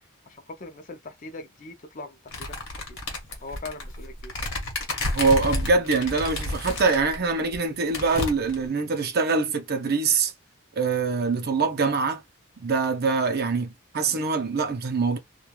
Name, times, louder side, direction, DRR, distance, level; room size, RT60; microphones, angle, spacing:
voice 1, 0.3-2.5 3.4-4.3, left 2 dB, 35° left, 0.5 m, -40 dB
sound 1, 2.3-7.2 7.5-7.6 7.9-8.7, left 2 dB, 60° left, 1.0 m, -31 dB
voice 2, 5.1-10.3 10.8-12.2 12.6-15.2, right 4 dB, 45° right, 0.6 m, -24 dB
3.1 x 2.2 x 2.2 m
head